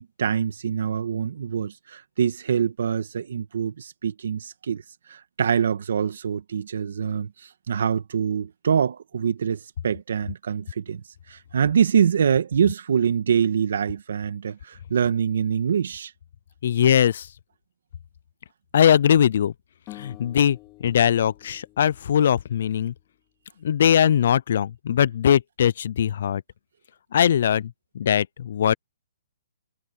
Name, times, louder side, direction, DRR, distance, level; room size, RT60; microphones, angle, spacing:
voice 1, 0.0-4.8 5.1-7.3 7.7-11.0 11.3-16.1, right 7 dB, 70° right, 2.1 m, -24 dB
voice 2, 16.6-17.3 18.7-19.5 19.9-22.9 23.6-26.4 27.1-28.7, left 9 dB, 55° left, 0.3 m, -21 dB
sound 1, 19.9-23.0, left 19 dB, 25° left, 3.9 m, -48 dB
hypercardioid pair, 160°, 0 cm